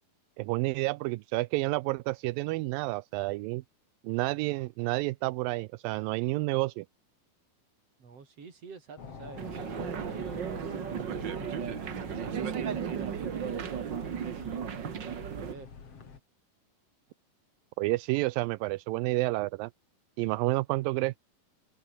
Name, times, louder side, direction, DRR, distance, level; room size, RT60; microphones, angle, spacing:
voice 1, 0.4-3.6 4.0-6.9 17.8-19.7 20.2-21.2, right 21 dB, 80° right, 2.1 m, -30 dB
voice 2, 8.0-13.7 14.3-15.7, right 5 dB, 40° right, 4.9 m, -50 dB
sound 1, 9.0-16.2, left 5 dB, 40° left, 3.9 m, -47 dB
sound 2, 9.4-15.5, right 8 dB, 65° right, 1.1 m, -35 dB
open air
omnidirectional pair, 4.5 m